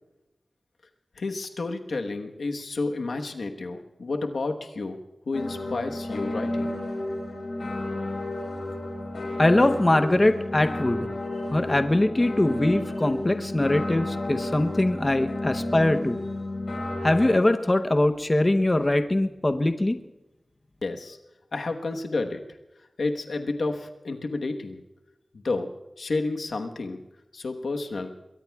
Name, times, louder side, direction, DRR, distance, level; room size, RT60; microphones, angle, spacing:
voice 1, 1.2-5.0 5.3-6.8 20.8-21.2 21.5-22.4 23.0-24.8 25.3-25.7 26.0-27.0 27.3-28.1, left 3 dB, 90° left, 4 dB, 1.2 m, -30 dB
sound 1, 5.3-17.3, left 1 dB, 75° left, 4.2 m, -32 dB
voice 2, 9.4-11.1 11.5-16.2 17.0-20.0, left 1 dB, 30° left, 7 dB, 0.8 m, -22 dB
27.5 x 22.0 x 2.3 m, 1.0 s
wide cardioid pair, 85°, 0 cm